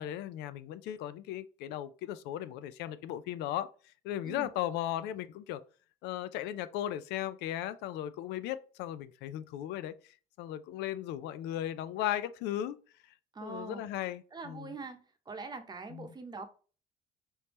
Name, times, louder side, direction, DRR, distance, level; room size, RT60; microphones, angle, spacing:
voice 1, 0.0-3.7 4.0-5.6 6.0-9.9 10.4-12.8 13.4-14.7 15.9-16.1, left 12 dB, 90° left, 0.4 m, -36 dB
voice 2, 13.3-13.9 14.3-15.0 15.3-16.5, right 3 dB, 25° right, 0.8 m, -43 dB
4.3 x 3.5 x 3.0 m
cardioid pair, 110°, 17 cm